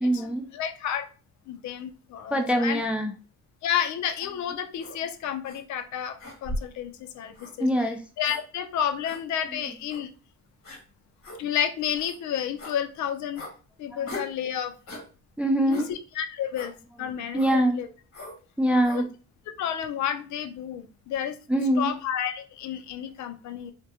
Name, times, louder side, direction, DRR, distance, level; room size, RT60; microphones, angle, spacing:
voice 1, 0.0-0.5 2.3-3.1 7.6-8.0 9.5-9.6 13.9-14.1 15.4-15.9 17.0-17.8 18.6-19.1 21.5-22.0, equal, 5° right, 4 dB, 0.3 m, -24 dB
voice 2, 0.5-1.1 1.5-2.8 3.6-6.2 6.4-7.7 8.2-10.1 11.4-13.4 13.8-14.7 15.7-15.8 16.2-16.7 17.0-17.9 18.9-19.0 19.6-21.4 21.8-23.7, left 9 dB, 70° left, 8 dB, 0.5 m, -30 dB
sound 1, 4.8-5.0 5.4-5.6 6.2-6.8 7.3-7.5 8.2-8.4 9.0-9.2 9.9-10.0 10.6-10.8 11.2-11.4 11.9-12.2 12.6-12.8 13.3-13.5 14.1-14.4 14.9-15.1 15.7-15.9 16.5-16.7 17.4-17.6 18.1-18.4 18.8-19.0, left 1 dB, 50° left, 1.2 m, -38 dB
2.2 x 2.1 x 2.7 m, 0.35 s
cardioid pair, 90°, 30 cm